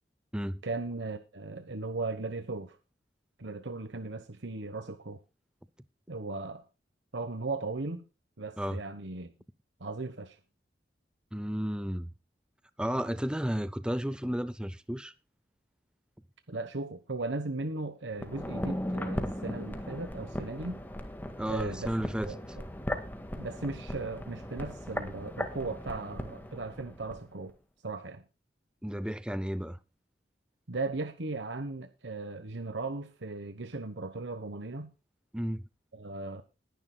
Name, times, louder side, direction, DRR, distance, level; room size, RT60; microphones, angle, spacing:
voice 1, 0.6-2.8 3.4-5.2 6.1-6.6 7.1-8.0 8.4-9.3 9.8-10.4 16.5-20.8 21.5-21.9 22.2-22.4 23.4-27.5 27.8-28.2 30.7-34.9 35.9-36.4, right 3 dB, 85° right, 1.2 m, -37 dB
voice 2, 11.3-12.1 12.8-15.1 21.4-22.3 28.8-29.8 35.3-35.6, equal, 5° right, 0.5 m, -33 dB
sound 1, 18.1-27.2 27.5-27.6, equal, 10° left, 1.8 m, -37 dB
20.0 x 10.5 x 2.3 m
head